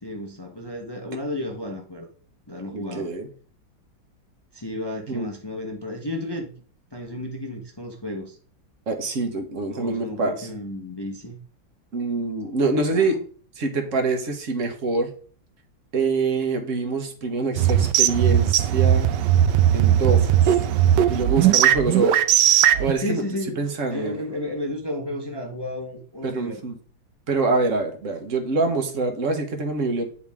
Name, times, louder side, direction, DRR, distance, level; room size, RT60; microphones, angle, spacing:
voice 1, 0.0-2.1 2.5-3.1 4.5-6.5 6.9-8.4 9.7-11.4 12.9-13.2 23.0-26.6, left 1 dB, 40° left, 2 dB, 0.3 m, -32 dB
voice 2, 2.7-3.3 5.1-5.3 8.9-10.5 11.9-13.2 13.6-15.1 15.9-19.1 19.7-20.6 21.1-22.2 22.5-23.2 23.6-24.2 26.2-26.7 27.3-30.1, right 3 dB, 45° right, 5 dB, 1.4 m, -25 dB
sound 1, 17.6-22.9, right 11 dB, 70° right, 1.1 m, -18 dB
9.0 x 4.9 x 3.5 m, 0.43 s
omnidirectional pair, 2.1 m